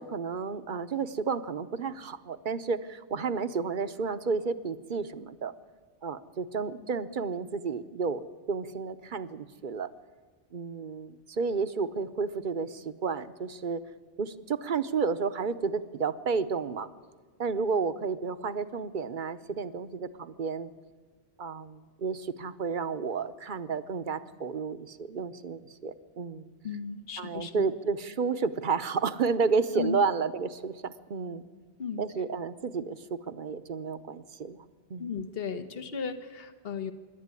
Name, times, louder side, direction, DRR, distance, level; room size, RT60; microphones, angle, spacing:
voice 1, 0.0-5.5 6.0-9.9 10.5-13.8 14.2-16.9 17.4-20.7 21.4-26.5 27.2-31.4 32.0-34.6 34.9-35.1, right 5 dB, 50° right, 12 dB, 0.9 m, -31 dB
voice 2, 26.6-27.6 29.8-30.0 31.8-32.0 35.0-36.9, left 6 dB, 60° left, 8 dB, 1.3 m, -35 dB
25.5 x 11.5 x 9.6 m, 1.5 s
omnidirectional pair, 1.1 m